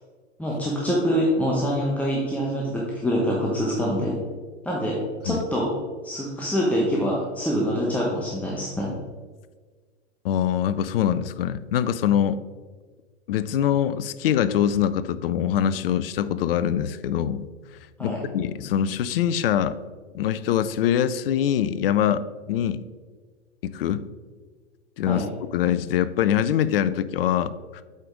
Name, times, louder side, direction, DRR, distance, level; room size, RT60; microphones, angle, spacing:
voice 1, 0.4-4.2 4.6-5.0 5.2-5.7 6.0-8.9 18.0-18.2 25.1-25.2, equal, 5° left, -4 dB, 1.1 m, -25 dB
voice 2, 10.2-12.4 13.3-17.5 18.0-19.8 20.1-22.8 23.6-24.0 25.0-27.8, left 10 dB, 55° left, 15 dB, 0.5 m, -24 dB
8.1 x 5.1 x 3.8 m, 1.4 s
hypercardioid pair, 105°, 35 cm